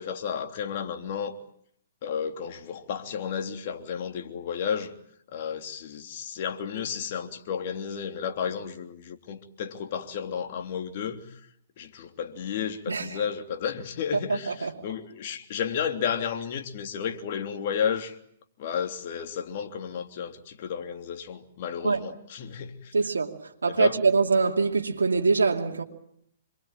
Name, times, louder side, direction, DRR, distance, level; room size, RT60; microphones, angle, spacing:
voice 1, 0.0-1.3 2.0-4.9 5.3-11.4 11.8-18.2 18.6-22.9 23.7-24.0, left 7 dB, 50° left, 3.2 m, -32 dB
voice 2, 12.9-13.2 14.1-14.7 21.8-22.0 22.9-23.3 23.6-25.8, right 4 dB, 85° right, 2.7 m, -24 dB
27.5 x 22.5 x 9.0 m
hypercardioid pair, 125°, 0 cm